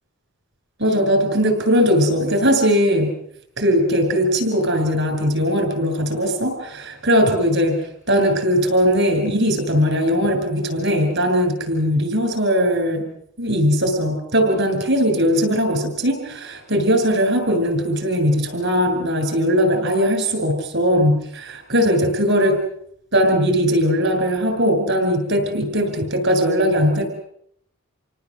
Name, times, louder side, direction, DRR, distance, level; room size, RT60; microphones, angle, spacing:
voice 1, 0.8-3.1 3.6-13.0 13.4-22.6 23.1-27.1, equal, 60° right, 5 dB, 7.7 m, -19 dB
29.0 x 18.5 x 7.9 m, 0.72 s
head